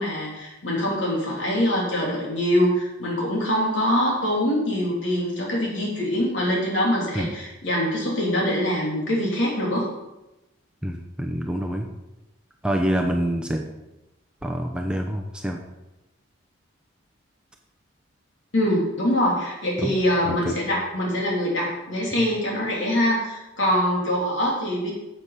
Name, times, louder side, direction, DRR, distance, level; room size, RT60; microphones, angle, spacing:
voice 1, 0.0-9.9 18.5-24.9, equal, 65° left, -3 dB, 3.2 m, -24 dB
voice 2, 10.8-11.9 12.6-13.7 14.4-15.6 19.8-19.9 20.2-20.6, equal, 5° right, 1 dB, 0.6 m, -26 dB
9.8 x 7.4 x 5.0 m, 0.98 s
head